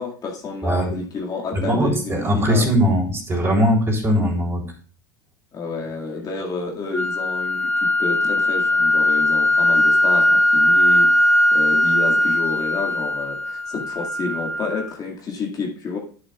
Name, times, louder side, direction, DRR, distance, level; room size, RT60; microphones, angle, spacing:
voice 1, 0.0-2.7 5.5-16.0, left 4 dB, 35° left, -1 dB, 2.0 m, -30 dB
voice 2, 0.6-1.0 1.5-4.6, equal, 25° right, -1 dB, 3.7 m, -20 dB
sound 1, 6.9-14.9, left 1 dB, 10° left, 3.3 m, -19 dB
9.9 x 9.6 x 2.4 m, 0.41 s
hypercardioid pair, 100°, 11 cm